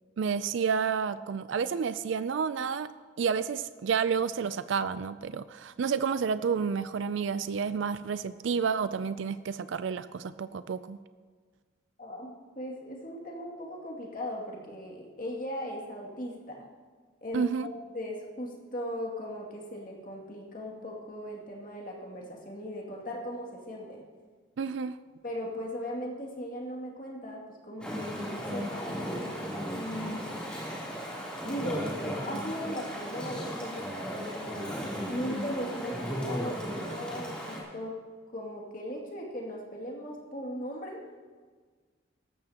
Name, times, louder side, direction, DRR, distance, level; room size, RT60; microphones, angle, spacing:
voice 1, 0.2-2.9 3.2-11.0 17.3-17.7 24.6-25.0, right 6 dB, 75° right, 13 dB, 0.4 m, -30 dB
voice 2, 12.0-16.7 17.2-24.0 25.2-29.2 29.7-30.4 31.4-38.0 38.3-41.0, equal, 45° left, -2 dB, 2.4 m, -38 dB
Chatter / Stream, 27.8-37.6, equal, 5° left, 3.2 m, -36 dB
18.0 x 14.0 x 2.9 m, 1.5 s
head